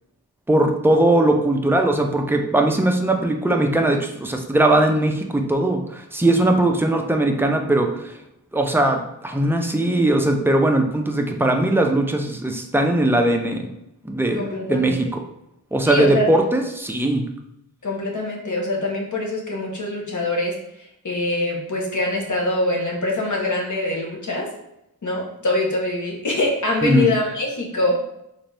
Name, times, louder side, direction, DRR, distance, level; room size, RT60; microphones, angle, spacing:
voice 1, 0.5-8.2 8.5-13.7 14.0-14.4 14.7-15.2 15.7-17.2 26.8-27.1, right 1 dB, 5° right, 3 dB, 0.4 m, -19 dB
voice 2, 14.3-15.0 15.8-16.3 17.8-20.5 21.0-24.5 25.0-28.0, left 2 dB, 50° left, -1 dB, 1.0 m, -24 dB
3.9 x 2.6 x 3.3 m, 0.83 s
wide cardioid pair, 95°, 38 cm